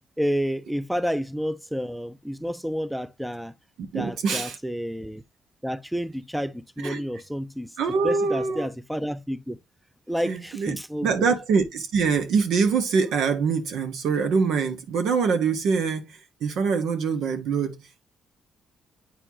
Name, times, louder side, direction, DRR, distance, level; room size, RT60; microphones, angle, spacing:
voice 1, 0.2-3.5 3.9-5.2 5.6-7.7 8.0-9.6 10.1-11.3, equal, 5° right, 0.5 m, -30 dB
voice 2, 3.8-4.6 6.8-7.0 7.8-8.7 10.2-10.8 11.0-18.0, right 5 dB, 80° right, 1.4 m, -24 dB
8.9 x 4.4 x 2.8 m
cardioid pair, 90°, 0 cm